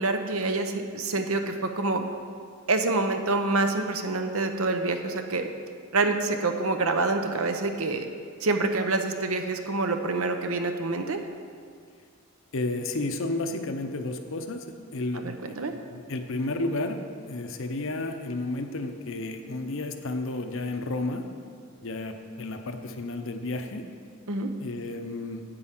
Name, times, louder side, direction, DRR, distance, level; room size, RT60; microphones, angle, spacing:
voice 1, 0.0-2.0 2.7-5.5 5.9-8.1 8.4-11.2 15.1-15.7 24.3-24.5, right 3 dB, 70° right, 6 dB, 0.8 m, -27 dB
voice 2, 12.5-14.7 14.9-15.3 15.9-17.0 17.3-21.3 21.8-23.8 24.6-25.4, left 2 dB, 60° left, 6 dB, 0.8 m, -32 dB
9.0 x 7.7 x 6.0 m, 2.1 s
head